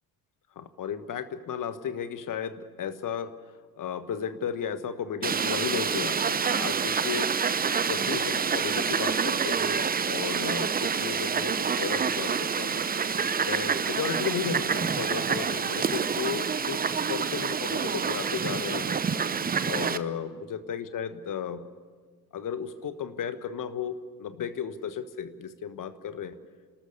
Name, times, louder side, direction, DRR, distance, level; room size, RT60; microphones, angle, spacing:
voice 1, 0.5-3.3 3.8-7.3 7.8-12.8 13.4-19.0 19.6-21.7 22.3-26.4, left 8 dB, 40° left, 11 dB, 1.5 m, -34 dB
Fowl, 5.2-20.0, right 6 dB, 20° right, 0.7 m, -27 dB
29.5 x 13.0 x 8.4 m, 1.5 s
figure-of-eight pair, 55°, 48 cm